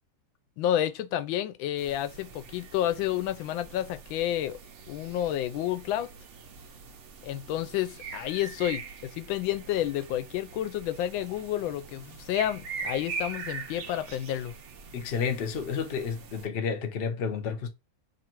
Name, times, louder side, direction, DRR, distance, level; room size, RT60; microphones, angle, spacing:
voice 1, 0.6-4.6 4.9-6.1 7.2-14.5, left 12 dB, 90° left, 1.3 m, -30 dB
sound 1, 1.8-16.5, right 5 dB, 65° right, 0.7 m, -43 dB
voice 2, 14.9-17.7, left 6 dB, 70° left, 0.5 m, -31 dB
3.3 x 2.5 x 4.4 m
omnidirectional pair, 2.1 m